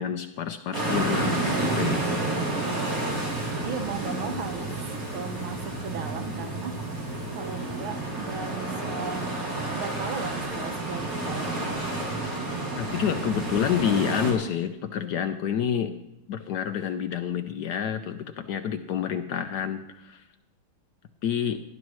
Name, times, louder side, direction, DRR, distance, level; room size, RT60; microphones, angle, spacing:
voice 1, 0.0-2.3 12.8-16.0 16.3-20.2 21.2-21.6, left 8 dB, 70° left, 8 dB, 1.0 m, -28 dB
sound 1, 0.7-14.3, right 2 dB, 40° right, 3.6 m, -30 dB
voice 2, 3.6-6.7 7.3-9.2 9.7-11.6, right 6 dB, 90° right, 5 dB, 2.1 m, -36 dB
18.5 x 11.0 x 3.1 m, 0.87 s
omnidirectional pair, 2.2 m